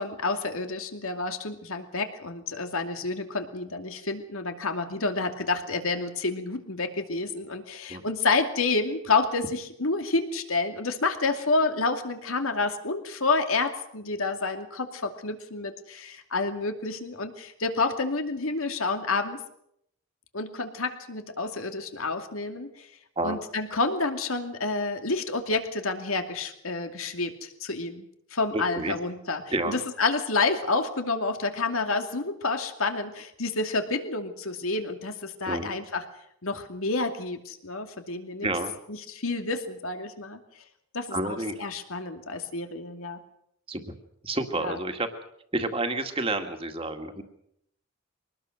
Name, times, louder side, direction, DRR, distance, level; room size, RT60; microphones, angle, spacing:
voice 1, 0.0-19.4 20.3-22.9 23.2-36.0 36.4-38.5 38.9-40.4 40.9-43.2 44.5-44.8, left 3 dB, 85° left, 5 dB, 2.6 m, -29 dB
voice 2, 28.5-29.0 29.5-29.8 35.5-35.7 38.4-38.7 41.1-41.5 43.7-43.9 44.2-45.1 45.5-47.2, right 2 dB, 25° right, 5 dB, 2.1 m, -29 dB
24.0 x 19.5 x 6.6 m, 0.73 s
head